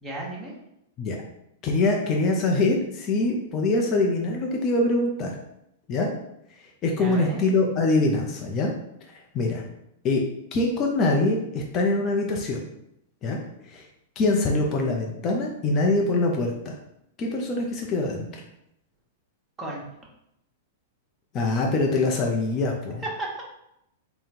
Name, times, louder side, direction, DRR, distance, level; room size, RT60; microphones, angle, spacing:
voice 1, 0.0-0.5 7.0-7.4 19.6-19.9 23.2-23.4, right 1 dB, 15° right, -4 dB, 1.3 m, -34 dB
voice 2, 1.6-5.3 5.9-6.1 6.8-8.7 9.3-9.6 10.0-10.2 10.5-12.6 13.2-13.4 13.7-13.8 14.2-16.8 17.2-18.4 21.3-23.0, left 2 dB, 35° left, 0 dB, 0.7 m, -24 dB
3.6 x 2.2 x 4.3 m, 0.80 s
hypercardioid pair, 110°, 0 cm